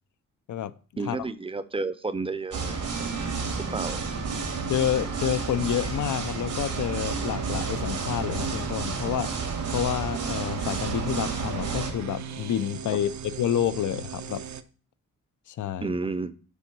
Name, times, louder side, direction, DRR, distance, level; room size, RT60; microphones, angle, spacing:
voice 1, 1.0-2.8 3.7-4.2 12.9-13.0 15.8-16.3, right 3 dB, 20° right, 0.6 m, -31 dB
sound 1, 2.5-11.9, right 4 dB, 85° right, 2.0 m, -31 dB
voice 2, 4.7-9.4 9.7-14.4 15.5-15.9, left 10 dB, 75° left, 0.6 m, -29 dB
sound 2, 6.7-14.6, right 9 dB, 65° right, 0.6 m, -38 dB
6.9 x 4.6 x 5.9 m
wide cardioid pair, 110°, 31 cm